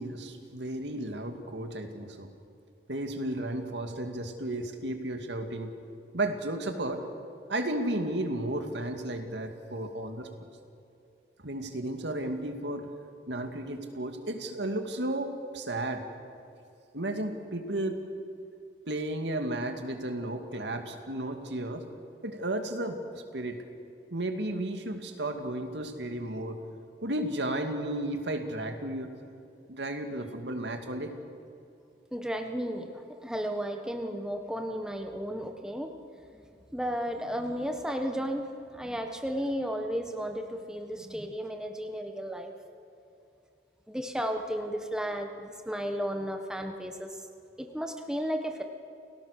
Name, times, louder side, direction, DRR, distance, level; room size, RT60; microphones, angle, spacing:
voice 1, 0.0-2.3 2.9-5.7 6.1-7.0 7.5-10.3 11.4-12.9 13.3-16.1 16.9-18.0 18.9-21.9 22.2-23.0 23.3-23.6 24.1-26.6 27.0-29.1 29.7-31.1, right 1 dB, 85° right, 6 dB, 2.3 m, -33 dB
voice 2, 32.1-35.9 36.4-42.5 43.9-47.2 47.6-48.6, equal, 5° right, 4 dB, 1.4 m, -34 dB
29.5 x 18.0 x 6.7 m, 2.7 s
head